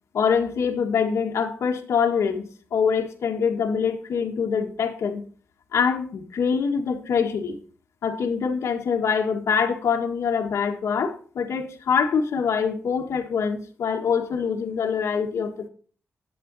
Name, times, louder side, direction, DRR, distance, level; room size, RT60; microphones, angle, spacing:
voice 1, 0.1-5.2 5.7-7.6 8.0-15.7, left 6 dB, 90° left, 2 dB, 1.6 m, -24 dB
11.0 x 8.7 x 4.1 m, 0.43 s
wide cardioid pair, 105°, 5 cm